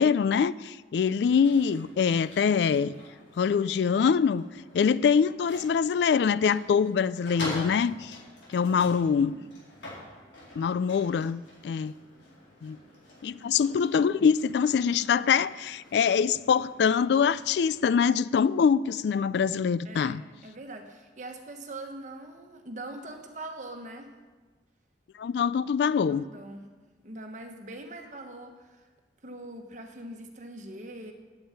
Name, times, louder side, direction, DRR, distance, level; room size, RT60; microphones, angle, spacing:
voice 1, 0.0-2.9 3.4-4.5 4.7-8.2 8.5-9.4 10.6-11.9 12.6-12.8 13.2-20.2 25.2-26.2, left 6 dB, 70° left, 0.3 m, -24 dB
sound 1, 1.0-18.1, left 1 dB, 85° left, 4.4 m, -46 dB
voice 2, 13.6-14.1 19.8-24.1 26.0-26.7 27.0-28.9 29.2-31.1, right 2 dB, 40° right, 1.3 m, -42 dB
8.8 x 8.7 x 8.7 m
head